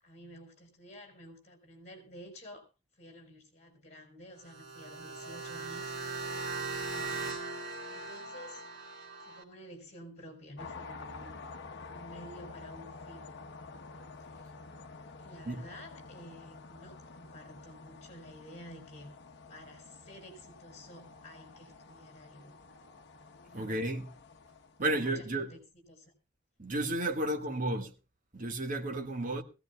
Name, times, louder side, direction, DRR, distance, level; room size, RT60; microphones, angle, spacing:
voice 1, 0.0-2.7 3.0-5.9 6.7-7.4 7.9-8.7 9.2-11.4 11.9-13.3 14.3-14.4 15.2-19.1 19.5-22.6 23.4-23.9 24.8-25.6 25.9-26.1 27.2-27.7, equal, 35° left, 4.8 m, -51 dB
sound 1, 4.4-9.4, right 4 dB, 75° right, 3.1 m, -39 dB
sound 2, 10.6-24.9, left 3 dB, 60° left, 1.1 m, -49 dB
voice 2, 23.5-24.1 24.8-25.5 26.6-27.9 28.3-29.4, right 1 dB, 40° right, 1.6 m, -32 dB
21.5 x 16.5 x 2.3 m
head